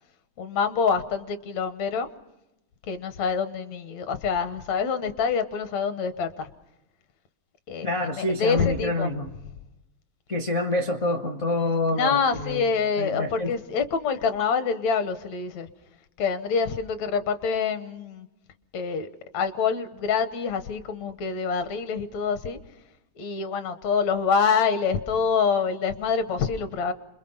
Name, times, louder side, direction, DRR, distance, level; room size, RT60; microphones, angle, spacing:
voice 1, 0.4-2.1 2.9-6.5 7.7-7.9 8.2-9.1 11.9-15.7 16.2-18.3 18.7-19.1 19.3-22.6 23.2-26.9, left 6 dB, 70° left, 10 dB, 2.3 m, -26 dB
voice 2, 7.8-9.3 10.3-12.7 13.0-13.5, left 2 dB, 55° left, 2 dB, 0.8 m, -27 dB
27.5 x 22.0 x 5.6 m, 0.93 s
omnidirectional pair, 3.4 m